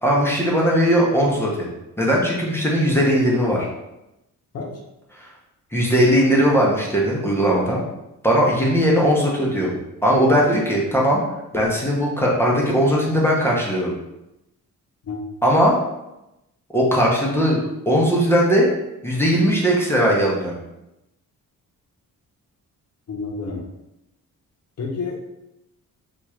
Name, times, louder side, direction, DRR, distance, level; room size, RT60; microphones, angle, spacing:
voice 1, 0.0-1.7 2.0-3.7 5.2-5.3 5.7-7.8 8.2-9.7 10.0-11.2 11.5-13.9 15.4-15.8 16.7-17.6 17.9-18.7 19.0-20.5, equal, 5° left, -4 dB, 0.6 m, -18 dB
voice 2, 23.1-23.7 24.8-25.2, left 4 dB, 45° left, 0 dB, 0.7 m, -29 dB
3.0 x 2.4 x 4.3 m, 0.91 s
wide cardioid pair, 140°, 33 cm